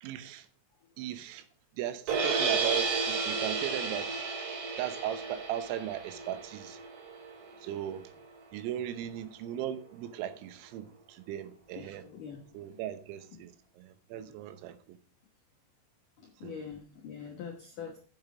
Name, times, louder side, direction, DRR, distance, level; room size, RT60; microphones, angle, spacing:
voice 1, 0.0-0.5 1.0-1.5 1.8-4.2 4.8-6.8 7.6-8.1 8.5-12.1 12.6-15.0 16.4-16.6, right 11 dB, 85° right, 3.5 m, -38 dB
sound 1, 2.1-8.2, right 4 dB, 65° right, 5.4 m, -33 dB
voice 2, 11.8-12.4 12.7-12.9 13.3-13.4 14.1-14.4 16.2-18.0, left 7 dB, 80° left, 1.9 m, -44 dB
7.7 x 7.7 x 6.0 m
omnidirectional pair, 5.9 m